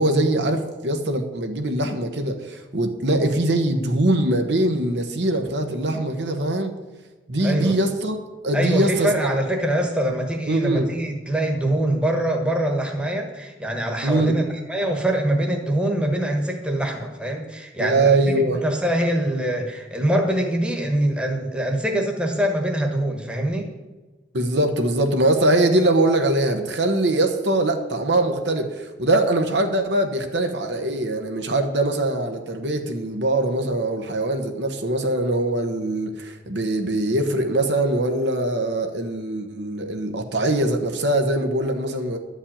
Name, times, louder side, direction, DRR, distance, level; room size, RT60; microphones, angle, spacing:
voice 1, 0.0-6.8 7.3-8.2 8.4-9.3 10.5-10.9 14.0-14.4 17.8-18.6 24.3-42.2, right 1 dB, 65° right, 5 dB, 1.2 m, -22 dB
voice 2, 7.4-7.8 8.5-18.2 18.5-23.7, right 1 dB, 5° right, 2 dB, 1.3 m, -24 dB
11.5 x 5.4 x 8.7 m, 1.2 s
head